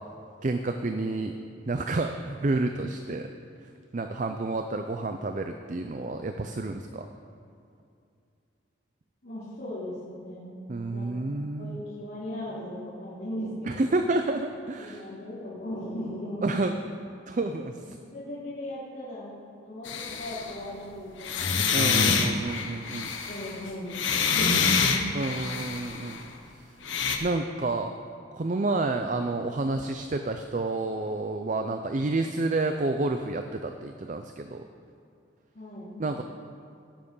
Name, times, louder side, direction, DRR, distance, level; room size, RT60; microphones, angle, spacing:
voice 1, 0.4-1.3 1.7-3.3 3.9-7.1 10.7-11.8 13.7-15.0 16.4-16.7 17.3-18.0 21.7-23.2 25.1-26.2 26.5-26.6 27.2-27.9 28.3-34.6 36.0-36.2, right 2 dB, 40° right, 6 dB, 0.5 m, -29 dB
voice 2, 9.2-10.6 10.9-11.2 11.5-13.8 14.8-16.9 17.8-19.3 19.6-21.6 23.3-25.0 35.5-36.0, left 1 dB, 55° left, -9 dB, 2.7 m, -37 dB
sound 1, 19.8-20.5 21.2-26.2 26.8-27.2, left 5 dB, 80° left, 1.1 m, -26 dB
17.5 x 7.6 x 5.5 m, 2.5 s
head